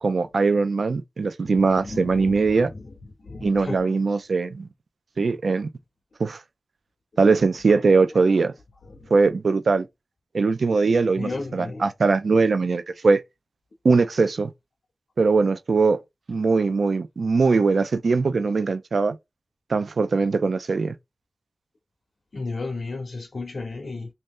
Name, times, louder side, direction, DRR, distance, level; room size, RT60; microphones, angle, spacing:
voice 1, 0.0-2.7 3.4-4.7 5.2-5.7 6.2-6.4 7.2-8.5 9.1-9.9 10.3-13.2 13.8-14.5 15.2-16.0 16.3-19.2 19.7-20.9, right 4 dB, 75° right, 0.4 m, -21 dB
voice 2, 1.8-2.8 3.2-3.9 9.0-9.1 11.2-11.8 22.3-24.1, left 3 dB, 65° left, 0.7 m, -33 dB
3.1 x 2.6 x 3.6 m
wide cardioid pair, 95°, 0 cm